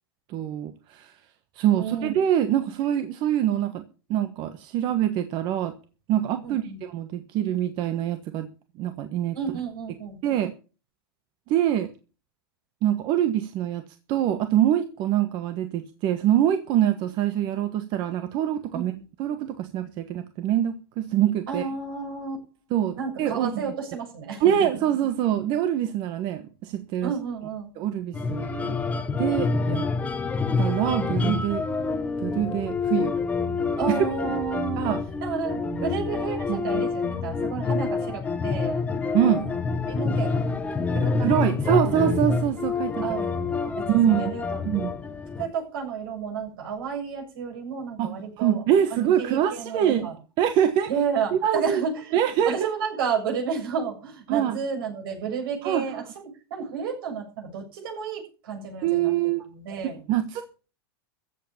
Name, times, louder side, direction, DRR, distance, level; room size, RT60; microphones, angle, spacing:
voice 1, 0.3-1.1 1.5-3.8 4.1-5.7 6.1-8.5 8.8-9.4 10.2-10.5 11.5-11.9 12.8-13.8 14.1-18.9 19.2-21.6 22.7-23.7 24.4-27.1 27.8-28.8 29.2-29.9 30.6-31.6 32.2-33.2 33.9-34.0 34.8-35.0 35.7-35.8 36.5-36.8 39.1-39.4 41.2-43.0 43.6-44.3 44.6-44.9 48.0-50.1 50.4-50.9 51.3-51.8 52.1-52.5 54.3-54.6 55.6-56.0 58.8-59.4 60.1-60.7, right 10 dB, 40° right, 9 dB, 1.3 m, -24 dB
voice 2, 1.8-2.1 6.4-6.8 9.3-10.2 18.7-19.0 21.5-22.4 23.0-24.4 27.0-27.7 33.8-34.9 35.2-38.8 39.3-39.6 39.9-40.6 40.9-41.4 41.7-41.9 43.0-44.6 45.4-48.6 49.2-50.1 50.9-52.2 52.5-59.1 59.5-60.0, right 6 dB, 70° right, 2 dB, 7.3 m, -31 dB
sound 1, 28.1-45.4, left 4 dB, 10° left, 1.2 m, -27 dB
15.0 x 8.1 x 7.2 m, 0.36 s
supercardioid pair, 155°, 12 cm